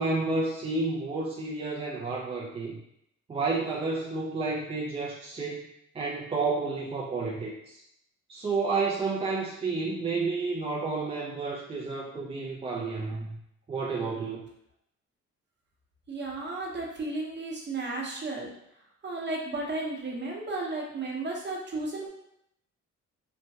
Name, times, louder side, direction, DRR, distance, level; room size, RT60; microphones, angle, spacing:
voice 1, 0.0-2.8 3.3-5.7 5.9-7.8 8.3-13.4 13.7-14.4, right 3 dB, 20° right, -3 dB, 0.3 m, -30 dB
voice 2, 16.1-18.5 19.0-22.1, right 2 dB, 35° right, -2 dB, 0.8 m, -34 dB
3.0 x 2.2 x 2.7 m, 0.78 s
cardioid pair, 90°, 30 cm